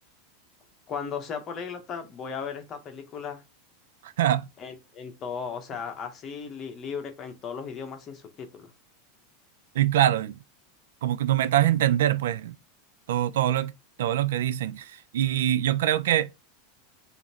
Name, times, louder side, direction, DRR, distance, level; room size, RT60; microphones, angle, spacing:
voice 1, 0.9-3.4 4.6-8.7, left 6 dB, 25° left, 0.8 m, -36 dB
voice 2, 4.0-4.5 9.8-10.3 11.0-12.6 13.1-13.7 14.0-16.3, right 12 dB, 85° right, 0.3 m, -24 dB
4.9 x 2.5 x 2.8 m
supercardioid pair, 170°, 0 cm